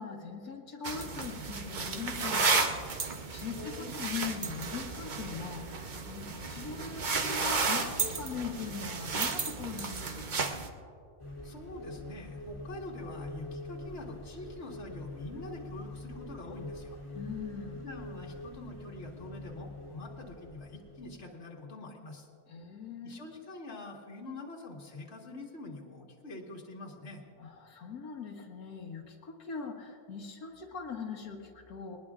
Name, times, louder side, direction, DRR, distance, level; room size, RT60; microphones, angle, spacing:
voice 1, 0.0-10.5 17.1-17.8 22.5-23.3 27.4-32.0, left 6 dB, 85° left, 0 dB, 1.7 m, -41 dB
sound 1, 0.8-10.7, right 4 dB, 40° right, 0.8 m, -33 dB
voice 2, 3.6-3.9 11.4-17.0 17.8-22.3 23.0-27.2, left 2 dB, 50° left, -1 dB, 2.0 m, -45 dB
sound 2, 11.2-21.3, left 2 dB, 20° left, 2.8 m, -45 dB
21.0 x 20.0 x 2.4 m, 2.2 s
omnidirectional pair, 1.5 m